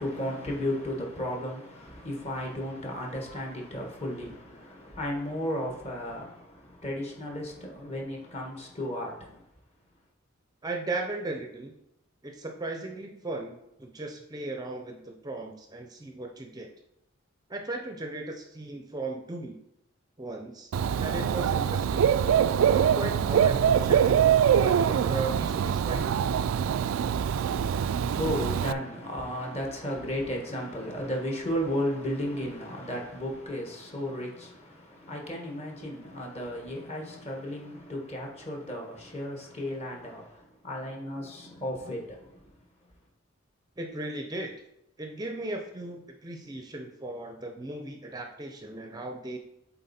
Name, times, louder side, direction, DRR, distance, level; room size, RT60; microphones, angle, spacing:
voice 1, 0.0-9.4 27.4-42.4, equal, 35° left, 1.4 m, -34 dB
voice 2, 10.6-11.7 12.2-16.7 17.5-19.6 20.2-20.7 21.0-22.0 22.7-23.6 23.8-24.2 24.6-26.2 43.8-44.5 45.0-49.4, right 2 dB, 20° right, 0.5 m, -36 dB
Dog / Bird, 20.7-28.7, right 8 dB, 85° right, 0.3 m, -24 dB
7.8 x 4.0 x 4.2 m
head